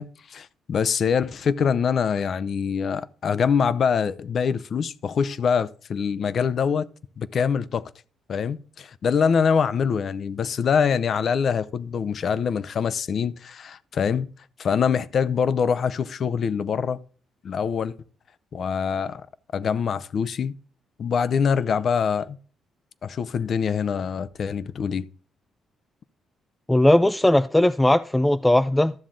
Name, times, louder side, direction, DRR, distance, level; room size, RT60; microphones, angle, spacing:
voice 1, 0.0-6.9 7.2-7.8 8.3-14.3 14.6-17.0 17.4-17.9 18.5-19.2 19.5-20.5 21.0-22.4 23.0-25.1, left 6 dB, 55° left, 0.6 m, -24 dB
voice 2, 26.7-28.9, left 1 dB, 10° left, 0.3 m, -18 dB
13.0 x 7.3 x 3.8 m
cardioid pair, 90°, 0 cm